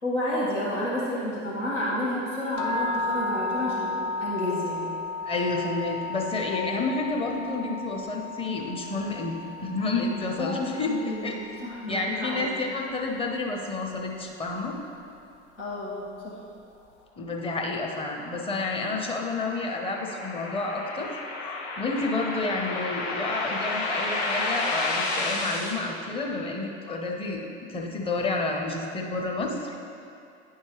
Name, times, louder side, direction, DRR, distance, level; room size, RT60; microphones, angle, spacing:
voice 1, 0.0-4.9 7.0-7.1 10.4-12.5 15.6-16.4 19.4-19.5, left 1 dB, 80° left, -8 dB, 1.5 m, -30 dB
sound 1, 2.6-12.6, left 3 dB, 50° left, 0.8 m, -34 dB
voice 2, 5.2-9.4 9.6-11.4 11.9-14.8 17.2-27.4 27.7-29.7, left 3 dB, 15° left, 0 dB, 0.8 m, -30 dB
sound 2, 17.9-25.7, left 2 dB, 65° left, 1.2 m, -31 dB
9.9 x 4.5 x 3.1 m, 2.5 s
figure-of-eight pair, 70°, 36 cm